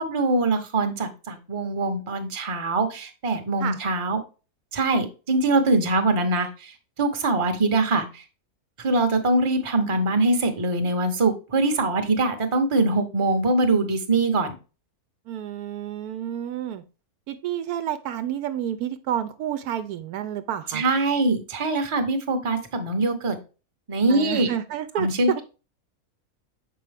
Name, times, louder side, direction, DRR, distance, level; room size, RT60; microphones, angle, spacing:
voice 1, 0.0-4.2 4.7-6.7 7.0-8.2 8.8-14.6 20.7-23.4 23.9-24.5 25.0-25.4, right 2 dB, 25° right, 7 dB, 0.8 m, -23 dB
voice 2, 15.3-16.8 17.3-20.8 24.1-25.4, right 10 dB, 85° right, 10 dB, 1.1 m, -30 dB
6.8 x 4.8 x 3.4 m, 0.32 s
omnidirectional pair, 1.6 m